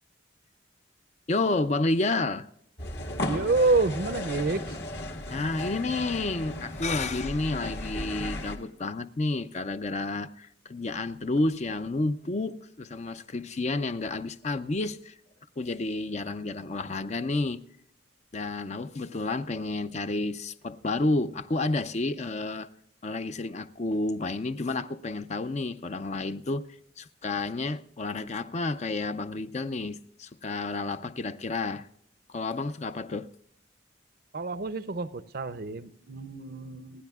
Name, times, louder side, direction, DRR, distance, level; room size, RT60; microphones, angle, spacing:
voice 1, 1.3-2.5 5.3-15.1 15.6-17.6 18.3-22.7 23.0-26.7 27.0-31.9 32.3-33.3, left 2 dB, 35° left, 0.5 m, -30 dB
sound 1, 2.8-8.6, left 1 dB, 60° left, 1.8 m, -35 dB
voice 2, 3.2-4.8 34.3-37.0, right 3 dB, 50° right, 0.6 m, -28 dB
29.0 x 9.9 x 2.4 m
head